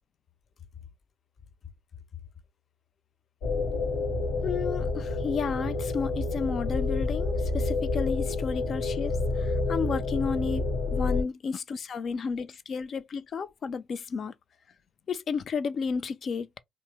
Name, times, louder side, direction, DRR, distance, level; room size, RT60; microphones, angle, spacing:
sound 1, 3.4-11.2, left 3 dB, 80° left, 1.0 m, -29 dB
voice 1, 4.4-14.3 15.1-16.6, left 5 dB, 55° left, 0.4 m, -32 dB
2.9 x 2.0 x 3.3 m
hypercardioid pair, 50°, 0 cm